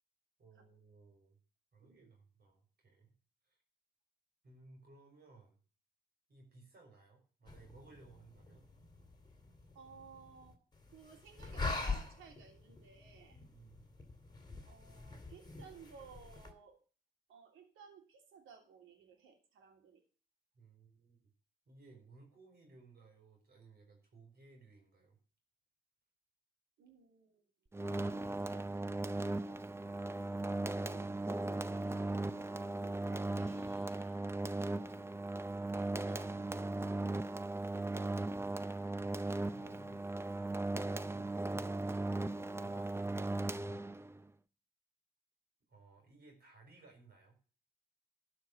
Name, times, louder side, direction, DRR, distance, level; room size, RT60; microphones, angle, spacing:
voice 1, 0.4-1.4 1.7-3.1 3.4-3.6 4.4-5.6 6.3-8.6 13.3-13.8 20.5-21.2 21.7-25.2 39.0-43.9 45.7-47.4, right 3 dB, 50° right, 2 dB, 4.4 m, -60 dB
sound 1, 7.5-16.5, left 3 dB, 20° left, 2.3 m, -45 dB
voice 2, 9.7-13.4 14.6-16.8 17.3-20.0 26.8-27.4 30.7-32.3 32.7-34.3 35.5-36.5, right 6 dB, 80° right, 4 dB, 2.9 m, -58 dB
sound 2, 27.7-44.2, right 2 dB, 10° right, 0.6 m, -38 dB
12.5 x 5.1 x 6.9 m, 0.39 s
cardioid pair, 90°, 20 cm